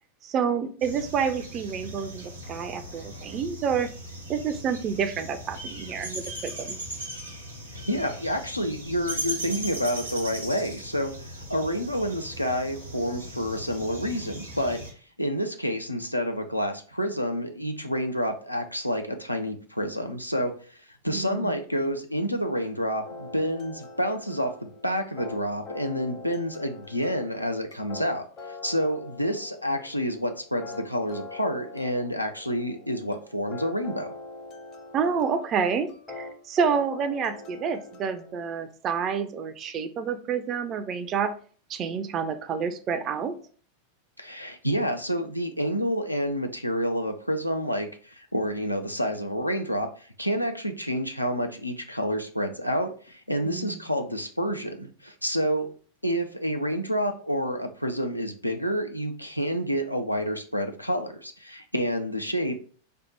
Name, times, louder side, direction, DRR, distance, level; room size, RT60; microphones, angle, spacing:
voice 1, 0.2-3.9 4.3-6.8 21.1-21.5 34.9-35.9 36.2-41.3 41.7-43.3 53.4-53.8, right 6 dB, 30° right, 9 dB, 0.4 m, -28 dB
sound 1, 0.8-14.9, right 1 dB, 80° right, 0.9 m, -38 dB
voice 2, 7.7-11.1 11.5-14.8 15.2-20.5 21.0-28.3 28.6-34.1 44.2-55.7 56.0-62.6, equal, 90° left, 5 dB, 0.4 m, -29 dB
sound 2, 23.0-38.3, left 3 dB, 35° left, 0.6 m, -43 dB
3.3 x 2.0 x 4.2 m, 0.43 s
figure-of-eight pair, 90°, 0 cm